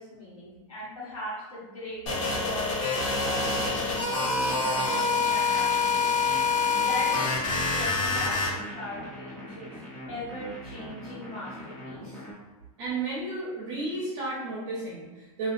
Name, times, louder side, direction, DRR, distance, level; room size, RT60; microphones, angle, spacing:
voice 1, 0.0-6.3 6.8-9.7 10.1-12.2, equal, 75° left, -9 dB, 1.2 m, -39 dB
sound 1, 2.1-8.5, left 4 dB, 60° left, 0.8 m, -26 dB
sound 2, 3.4-12.3, equal, 5° left, 0.8 m, -41 dB
voice 2, 12.8-15.5, right 2 dB, 40° right, -7 dB, 0.9 m, -33 dB
2.7 x 2.1 x 2.6 m, 1.2 s
supercardioid pair, 160°, 18 cm